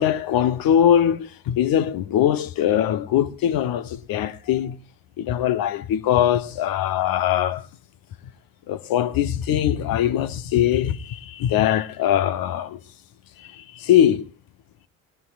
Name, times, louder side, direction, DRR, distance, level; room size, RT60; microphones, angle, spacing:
voice 1, 0.0-4.8 5.2-7.7 8.7-12.8 13.4-14.3, left 10 dB, 55° left, 1.1 m, -21 dB
28.5 x 18.0 x 2.5 m
hypercardioid pair, 60°, 42 cm